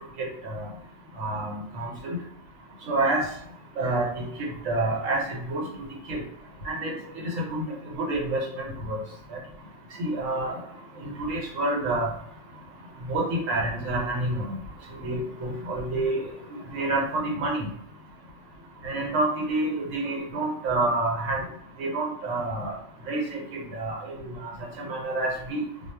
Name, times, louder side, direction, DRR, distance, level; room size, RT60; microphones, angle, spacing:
voice 1, 0.2-0.7 1.2-2.2 2.8-3.2 3.8-5.6 6.1-6.2 6.6-9.0 9.3-9.4 10.0-10.6 11.0-12.1 13.0-14.6 14.9-16.2 16.5-17.7 18.8-21.4 21.8-22.8 23.1-24.5 24.8-25.6, right 2 dB, 85° right, -1 dB, 1.2 m, -28 dB
2.3 x 2.1 x 3.2 m, 0.68 s
omnidirectional pair, 1.3 m